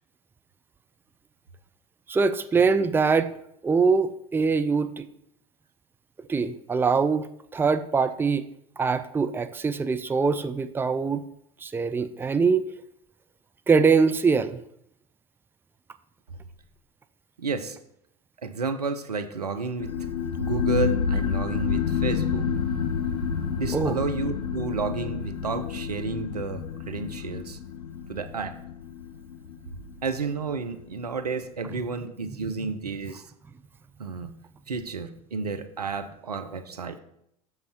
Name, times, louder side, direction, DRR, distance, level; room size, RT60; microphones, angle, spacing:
voice 1, 2.1-3.3 3.6-5.1 6.3-7.2 7.5-8.4 8.8-11.2 11.6-12.6 13.7-14.6 23.7-23.9, right 5 dB, 10° right, 10 dB, 0.5 m, -23 dB
voice 2, 17.4-17.8 18.4-19.9 20.4-22.5 23.6-27.6 28.1-28.6 30.0-33.2 34.0-34.3 34.7-37.0, right 4 dB, 85° right, 8 dB, 0.8 m, -31 dB
sound 1, 19.8-30.9, left 6 dB, 85° left, 0.9 m, -29 dB
7.7 x 6.7 x 4.5 m, 0.75 s
figure-of-eight pair, 75°, 20 cm